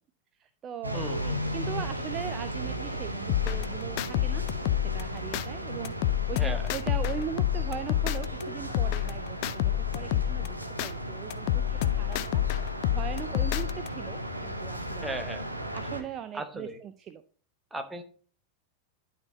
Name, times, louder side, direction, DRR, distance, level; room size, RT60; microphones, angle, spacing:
voice 1, 0.4-1.2 1.5-4.5 4.8-12.4 12.9-15.2 15.7-17.2, right 8 dB, 30° right, 10 dB, 0.5 m, -40 dB
sound 1, 0.8-16.0, equal, 85° right, 1.0 m, -35 dB
voice 2, 0.9-1.4 6.4-6.6 15.0-15.4 16.3-16.8 17.7-18.0, right 2 dB, 10° right, 7 dB, 1.2 m, -36 dB
sound 2, 3.3-5.5 5.9-8.4 8.7-10.9 11.3-13.9, left 14 dB, 45° left, 0.4 m, -28 dB
11.5 x 4.4 x 4.0 m, 0.42 s
figure-of-eight pair, 90°, 0 cm